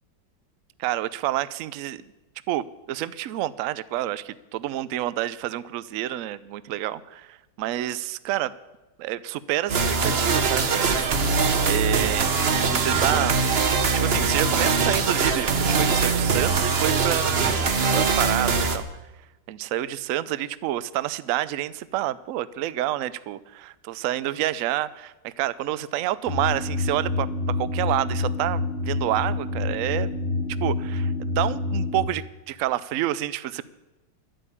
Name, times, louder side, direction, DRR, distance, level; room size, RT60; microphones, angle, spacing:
voice 1, 0.8-2.0 2.5-8.5 9.0-11.0 11.6-12.3 12.7-13.4 13.9-17.5 17.9-18.8 19.5-30.1 30.6-33.6, right 14 dB, 70° right, 16 dB, 0.8 m, -28 dB
sound 1, 9.7-18.8, right 4 dB, 40° right, 1.0 m, -22 dB
sound 2, 26.3-32.1, left 3 dB, 40° left, 1.3 m, -27 dB
12.0 x 8.9 x 8.6 m, 1.1 s
omnidirectional pair, 1.9 m